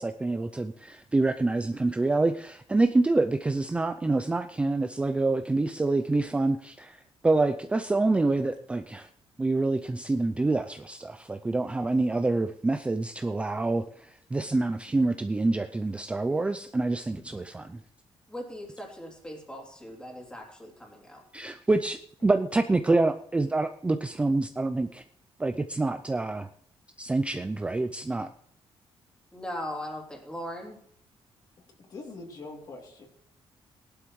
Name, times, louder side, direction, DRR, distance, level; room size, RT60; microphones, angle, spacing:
voice 1, 0.0-7.0 7.2-9.1 9.4-17.8 21.3-25.0 25.4-26.5 27.0-28.3, right 2 dB, 10° right, 7 dB, 0.4 m, -26 dB
voice 2, 18.3-21.2 29.3-30.8, equal, 10° left, -1 dB, 3.0 m, -39 dB
voice 3, 31.8-33.1, left 3 dB, 40° left, 1 dB, 2.9 m, -44 dB
18.0 x 11.5 x 3.1 m, 0.66 s
cardioid pair, 160°, 10 cm